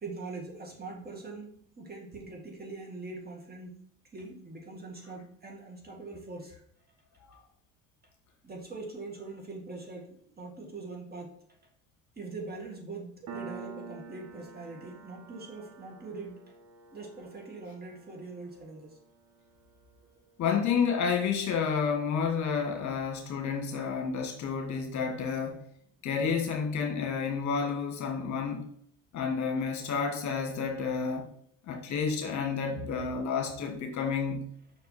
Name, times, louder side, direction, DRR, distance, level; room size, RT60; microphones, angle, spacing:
voice 1, 0.0-3.8 4.1-6.5 8.4-11.3 12.2-16.4 16.9-19.0, right 3 dB, 25° right, 0 dB, 2.1 m, -42 dB
Piano, 13.3-20.4, right 5 dB, 50° right, 1.5 m, -48 dB
voice 2, 20.4-25.7 26.0-28.7 29.1-31.3 31.7-34.5, left 6 dB, 50° left, 2 dB, 1.5 m, -30 dB
5.7 x 4.5 x 4.2 m, 0.63 s
hypercardioid pair, 75°, 38 cm